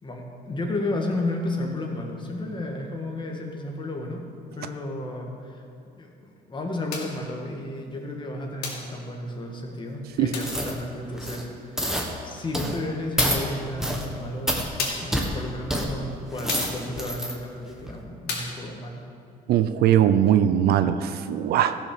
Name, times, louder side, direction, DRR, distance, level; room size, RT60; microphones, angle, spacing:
voice 1, 0.0-4.2 4.6-5.7 6.0-14.6 15.0-19.0, left 1 dB, 30° left, 1 dB, 1.9 m, -33 dB
sound 1, 6.9-7.2 8.6-8.9 10.3-10.6 12.4-12.5 13.2-13.6 14.8-15.2 16.5-16.8 18.3-18.6, left 4 dB, 70° left, 2.6 m, -32 dB
sound 2, 10.4-10.8 11.1-11.4 11.8-12.1 12.5-12.8 13.2-13.4 13.8-14.1 14.5-14.7 15.1-15.3 15.7-15.9 16.3-17.3 17.8-17.9, equal, 5° right, 1.5 m, -27 dB
voice 2, 19.5-21.8, right 10 dB, 70° right, 11 dB, 0.6 m, -20 dB
14.5 x 6.0 x 6.7 m, 2.5 s
cardioid pair, 110°, 17 cm